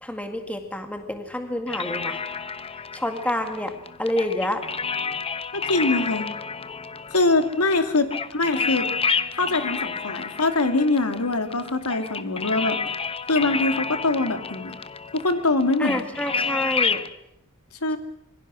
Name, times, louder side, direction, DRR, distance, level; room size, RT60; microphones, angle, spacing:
voice 1, 0.0-2.2 2.9-3.7 4.0-4.6 15.8-17.0, left 1 dB, 5° left, 6 dB, 1.9 m, -28 dB
sound 1, 1.7-17.1, left 5 dB, 25° left, 0.9 m, -30 dB
voice 2, 5.5-6.3 7.1-8.9 9.3-12.8 13.3-14.8 15.1-16.0 17.8-18.0, left 2 dB, 85° left, 7 dB, 2.4 m, -23 dB
26.0 x 23.0 x 6.2 m, 0.77 s
head